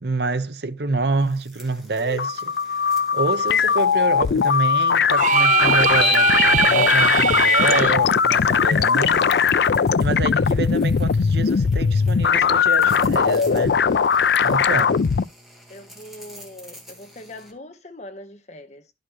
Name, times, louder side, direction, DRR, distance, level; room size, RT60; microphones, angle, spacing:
voice 1, 0.0-2.6 3.1-6.3 6.7-9.3 10.0-13.8 14.4-15.0, right 3 dB, 65° right, 0.8 m, -27 dB
sound 1, 1.1-17.5, equal, ahead, 1.7 m, -49 dB
sound 2, 2.0-15.2, left 6 dB, 65° left, 0.4 m, -19 dB
sound 3, 5.2-8.0, right 9 dB, 45° right, 0.4 m, -20 dB
voice 2, 14.4-14.9 15.7-18.9, left 1 dB, 40° left, 1.1 m, -42 dB
11.5 x 5.2 x 3.0 m
head